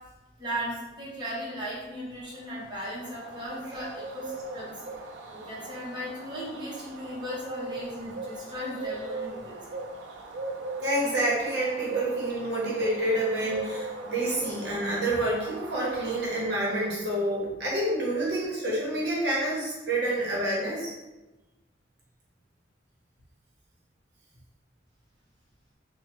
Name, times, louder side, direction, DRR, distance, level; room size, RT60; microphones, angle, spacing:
voice 1, 0.4-4.8 5.3-9.8, equal, 25° right, -8 dB, 0.9 m, -37 dB
Bird, 2.3-17.0, right 2 dB, 85° right, 0.4 m, -39 dB
voice 2, 10.8-20.9, right 1 dB, 65° right, -6 dB, 0.9 m, -28 dB
3.1 x 2.1 x 2.9 m, 1.1 s
head